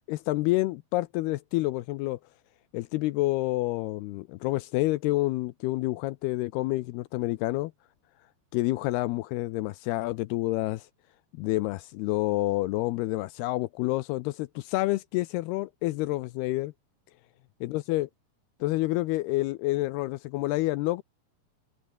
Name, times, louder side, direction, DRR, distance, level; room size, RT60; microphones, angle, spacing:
voice 1, 0.1-2.2 2.7-7.7 8.5-10.9 11.3-16.7 17.6-18.1 18.6-21.0, left 19 dB, 80° left, 2.5 m, -28 dB
omnidirectional pair, 4.9 m